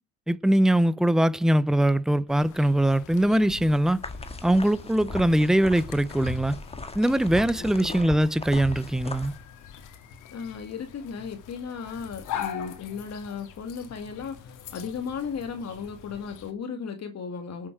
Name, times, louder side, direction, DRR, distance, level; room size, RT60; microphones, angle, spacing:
voice 1, 0.3-4.0 4.4-6.6 6.9-9.3, right 1 dB, ahead, 0.7 m, -22 dB
sound 1, 2.3-16.5, left 9 dB, 90° left, 2.2 m, -43 dB
sound 2, 4.0-9.4, left 3 dB, 20° left, 1.9 m, -38 dB
voice 2, 7.8-8.1 10.3-17.7, left 6 dB, 60° left, 2.1 m, -35 dB
19.0 x 7.7 x 4.6 m
cardioid pair, 90°, 30 cm